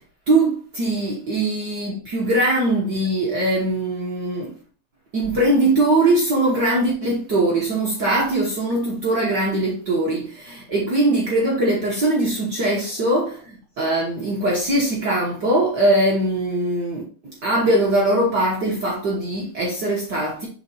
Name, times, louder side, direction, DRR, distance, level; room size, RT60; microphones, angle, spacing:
voice 1, 0.3-4.6 5.1-20.5, right 1 dB, 50° right, 1.5 m, -21 dB
6.8 x 4.0 x 4.2 m
omnidirectional pair, 3.3 m